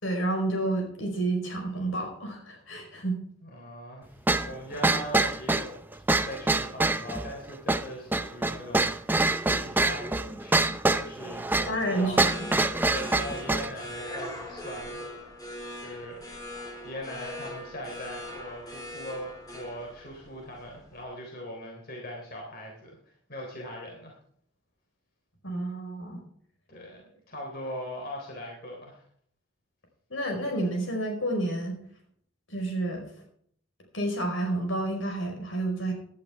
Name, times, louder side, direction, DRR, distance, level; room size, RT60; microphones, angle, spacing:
voice 1, 0.0-3.2 11.7-12.5 25.4-26.2 30.1-31.8 32.5-33.1 33.9-35.9, right 1 dB, 70° left, 2 dB, 5.0 m, -30 dB
voice 2, 3.4-4.1 4.3-5.8 6.2-12.2 12.9-15.0 15.8-16.2 16.6-23.0 23.3-24.1 26.7-29.0, equal, 50° left, 0 dB, 3.5 m, -40 dB
sound 1, 4.3-13.7, right 2 dB, 10° right, 0.5 m, -26 dB
sound 2, 11.4-21.0, left 1 dB, 20° left, 3.3 m, -41 dB
17.5 x 11.5 x 3.5 m, 0.63 s
head